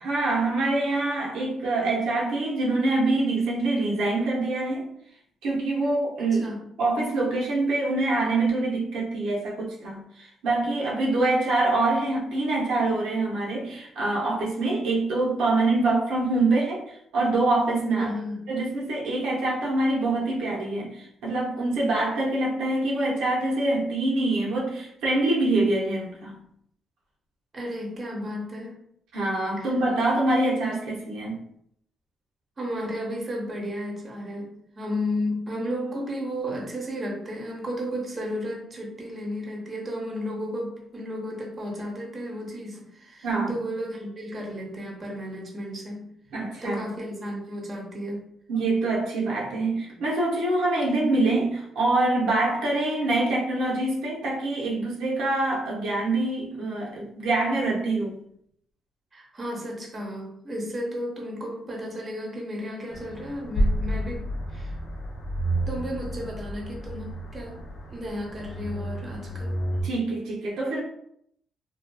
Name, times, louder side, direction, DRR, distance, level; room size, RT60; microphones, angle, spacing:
voice 1, 0.0-4.9 5.4-6.5 6.8-18.1 18.5-26.3 29.1-31.4 43.2-43.6 46.3-46.8 48.5-58.2 69.8-70.8, right 2 dB, 85° right, -4 dB, 0.6 m, -25 dB
voice 2, 6.2-6.7 18.0-18.6 27.5-28.8 29.6-29.7 32.6-46.1 46.6-48.2 59.1-64.7 65.7-67.6 67.9-69.6, equal, 35° right, -1 dB, 0.8 m, -33 dB
sound 1, 62.9-69.8, right 1 dB, 55° left, 0.5 m, -30 dB
2.5 x 2.2 x 2.2 m, 0.70 s
cardioid pair, 90°, 0 cm